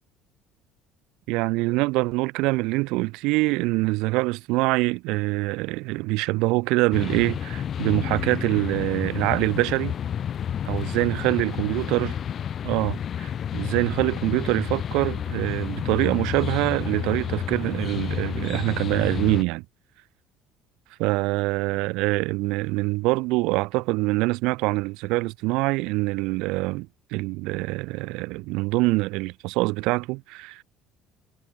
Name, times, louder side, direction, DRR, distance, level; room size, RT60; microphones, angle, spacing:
voice 1, 1.3-9.9 10.6-12.2 12.6-19.6 21.0-30.6, right 23 dB, 80° right, 4.7 m, -25 dB
sound 1, 6.9-19.4, left 9 dB, 45° left, 4.6 m, -30 dB
supercardioid pair, 100°, 0 cm